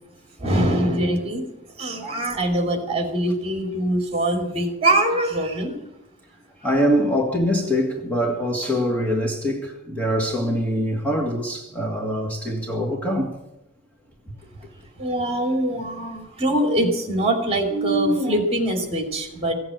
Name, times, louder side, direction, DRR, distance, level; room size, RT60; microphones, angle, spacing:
voice 1, 0.4-1.5 1.8-5.8 6.9-7.1 15.0-19.5, right 1 dB, 30° right, 2.8 m, -23 dB
voice 2, 6.6-13.4, equal, 5° left, 1.8 m, -23 dB
16.0 x 8.7 x 8.6 m
head